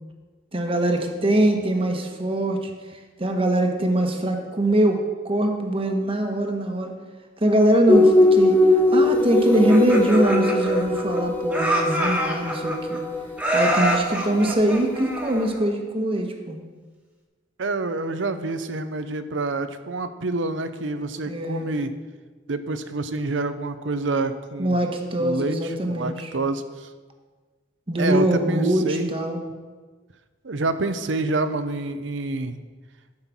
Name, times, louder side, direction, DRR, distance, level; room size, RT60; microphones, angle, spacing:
voice 1, 0.5-2.7 3.2-5.0 5.2-6.9 7.4-8.6 8.9-13.0 13.5-16.6 21.3-21.7 24.6-26.3 27.9-29.4, right 1 dB, 30° right, 4 dB, 1.1 m, -22 dB
sound 1, 7.9-15.3, left 1 dB, 10° left, 0.7 m, -21 dB
Laughter, 9.5-11.2 11.5-13.0 13.4-15.6, right 1 dB, 5° right, 1.4 m, -26 dB
voice 2, 17.6-21.9 22.5-24.8 25.2-26.9 27.9-29.1 30.4-32.5, right 3 dB, 75° right, 11 dB, 0.7 m, -27 dB
11.5 x 5.6 x 6.1 m, 1.4 s
head